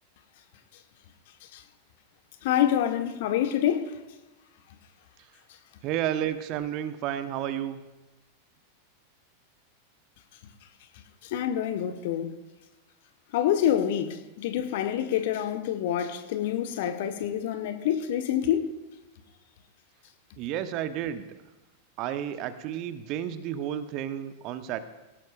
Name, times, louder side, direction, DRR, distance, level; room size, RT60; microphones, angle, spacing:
voice 1, 2.4-3.9 11.2-12.4 13.3-18.7, left 10 dB, 50° left, 1.3 m, -27 dB
voice 2, 5.8-7.8 20.4-21.3 22.0-24.8, right 10 dB, 40° right, 1.0 m, -31 dB
18.5 x 17.5 x 2.5 m
figure-of-eight pair, 90°, 0 cm